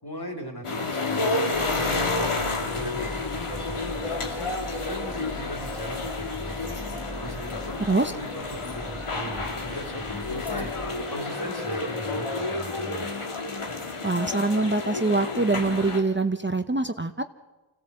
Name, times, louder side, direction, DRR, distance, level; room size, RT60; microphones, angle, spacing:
voice 1, 0.0-4.5 4.8-6.8 7.2-10.7 11.1-13.1, equal, 50° left, 2 dB, 4.0 m, -39 dB
sound 1, 0.6-16.0, left 3 dB, 90° left, 2.1 m, -30 dB
sound 2, 1.5-10.9, equal, 5° right, 2.9 m, -41 dB
voice 2, 14.0-17.2, right 3 dB, 25° right, 8 dB, 0.8 m, -24 dB
25.0 x 16.0 x 7.9 m, 1.2 s
wide cardioid pair, 45°, 49 cm